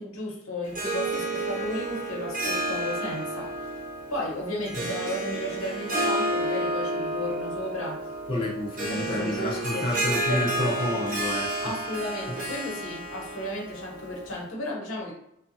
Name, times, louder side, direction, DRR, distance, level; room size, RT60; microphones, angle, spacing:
voice 1, 0.0-3.5 4.1-8.1 8.4-8.5 8.9-9.9 10.3-10.4 10.6-11.0 11.6-15.1, left 1 dB, 90° left, -3 dB, 1.0 m, -34 dB
Harp, 0.6-14.4, right 1 dB, 40° right, 0.5 m, -31 dB
voice 2, 8.3-11.7 12.3-12.4, left 1 dB, 25° left, -4 dB, 0.5 m, -30 dB
2.7 x 2.3 x 2.6 m, 0.78 s
head